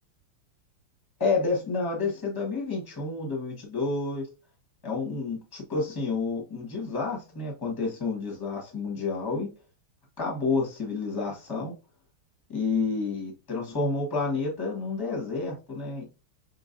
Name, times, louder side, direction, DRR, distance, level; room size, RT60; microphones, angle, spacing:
voice 1, 1.2-4.2 4.8-9.5 10.2-11.7 12.5-16.0, left 4 dB, 15° left, 1.1 m, -29 dB
5.0 x 3.7 x 2.6 m
omnidirectional pair, 2.4 m